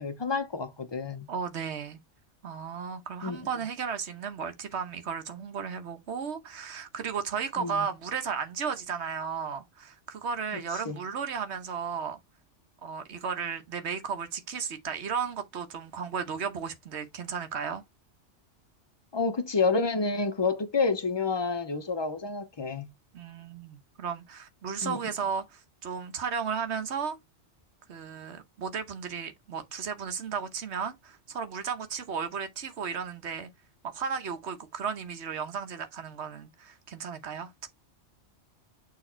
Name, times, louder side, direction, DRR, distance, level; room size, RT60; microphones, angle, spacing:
voice 1, 0.0-1.3 3.2-3.4 7.6-7.8 10.8-11.0 19.1-22.9 24.8-25.0, left 4 dB, 25° left, 0.7 m, -29 dB
voice 2, 1.3-2.0 2.4-12.2 12.8-17.8 23.1-27.2 27.9-33.5 33.8-37.7, right 6 dB, 65° right, 1.2 m, -34 dB
6.6 x 3.5 x 4.3 m
omnidirectional pair, 1.2 m